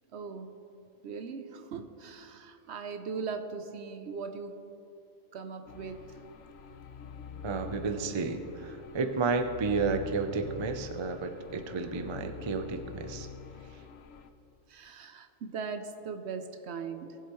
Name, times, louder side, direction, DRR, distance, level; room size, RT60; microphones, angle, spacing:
voice 1, 0.1-0.6 1.0-4.6 5.3-6.0 14.7-17.2, right 5 dB, 65° right, 8 dB, 0.8 m, -39 dB
sound 1, 5.7-14.3, left 7 dB, 65° left, 0.8 m, -46 dB
voice 2, 7.4-13.3 13.7-13.8, right 4 dB, 35° right, 7 dB, 0.4 m, -32 dB
19.5 x 7.7 x 3.0 m, 2.7 s
omnidirectional pair, 1.3 m